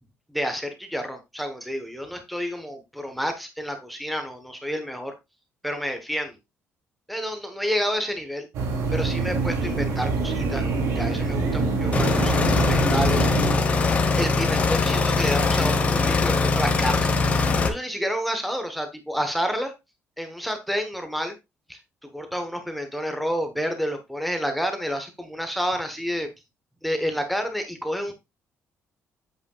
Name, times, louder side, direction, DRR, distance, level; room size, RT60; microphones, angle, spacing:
voice 1, 0.3-5.1 5.6-6.3 7.1-8.5 8.9-13.5 14.1-19.7 20.2-21.3 21.7-21.8 22.1-26.3 26.8-28.1, equal, ahead, 6 dB, 1.0 m, -29 dB
sound 1, 8.5-13.6, right 3 dB, 85° right, 2.6 m, -25 dB
sound 2, 11.9-17.7, left 4 dB, 25° left, 1.0 m, -22 dB
8.3 x 8.0 x 2.3 m, 0.22 s
cardioid pair, 180°, 5 cm